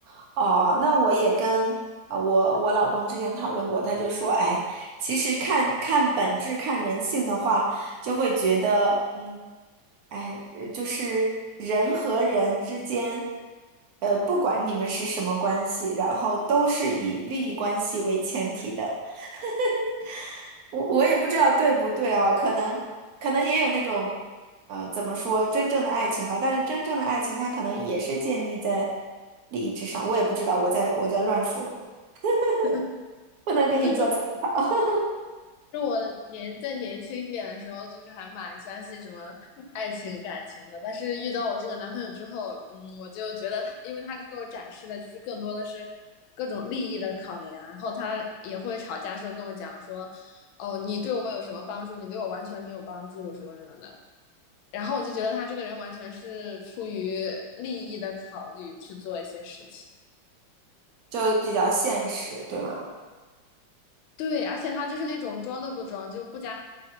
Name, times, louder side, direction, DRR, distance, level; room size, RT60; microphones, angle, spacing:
voice 1, 0.1-1.8 2.1-9.4 10.1-11.3 11.6-13.3 14.0-22.8 23.2-24.2 24.7-28.9 29.5-31.7 32.2-32.7 33.5-34.1 34.4-35.1 61.1-62.9, right 3 dB, 65° right, -2 dB, 0.9 m, -25 dB
voice 2, 35.7-45.9 46.4-54.0 54.7-59.8 64.2-66.5, left 5 dB, 90° left, 2 dB, 1.4 m, -34 dB
4.1 x 3.7 x 2.8 m, 1.3 s
omnidirectional pair, 2.1 m